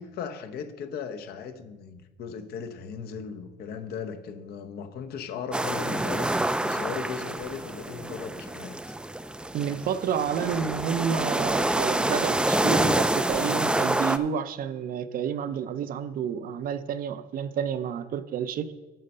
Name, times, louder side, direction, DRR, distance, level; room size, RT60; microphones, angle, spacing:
voice 1, 0.0-8.8, left 6 dB, 70° left, 0.9 m, -37 dB
sound 1, 5.5-14.2, right 1 dB, 5° right, 0.4 m, -27 dB
voice 2, 9.5-18.7, right 7 dB, 55° right, 0.6 m, -30 dB
9.0 x 6.5 x 5.4 m
cardioid pair, 110°, 17 cm